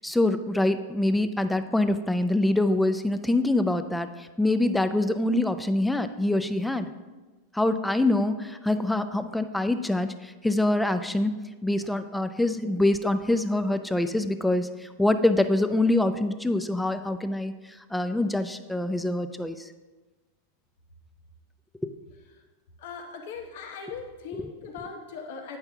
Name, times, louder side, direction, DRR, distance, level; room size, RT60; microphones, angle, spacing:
voice 1, 0.0-6.9 7.5-11.3 11.6-17.5 17.9-19.6, left 1 dB, 5° left, 10 dB, 0.5 m, -25 dB
voice 2, 22.8-25.6, left 5 dB, 65° left, 3 dB, 0.8 m, -39 dB
8.9 x 5.6 x 3.4 m, 1.3 s
hypercardioid pair, 100°, 0 cm